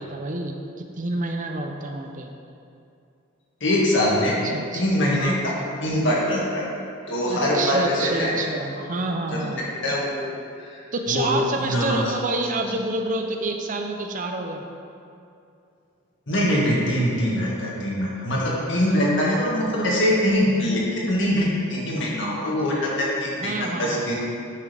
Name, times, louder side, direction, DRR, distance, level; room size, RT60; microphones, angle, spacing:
voice 1, 0.0-2.3 4.5-4.8 5.2-5.4 7.3-9.6 10.9-14.6 23.4-24.1, right 2 dB, 40° right, 3 dB, 0.6 m, -28 dB
voice 2, 3.6-4.4 4.7-6.7 7.1-8.3 9.3-10.2 10.6-12.1 12.4-12.5 16.3-24.2, left 1 dB, 60° left, -5 dB, 1.9 m, -23 dB
10.5 x 6.1 x 3.4 m, 2.5 s
head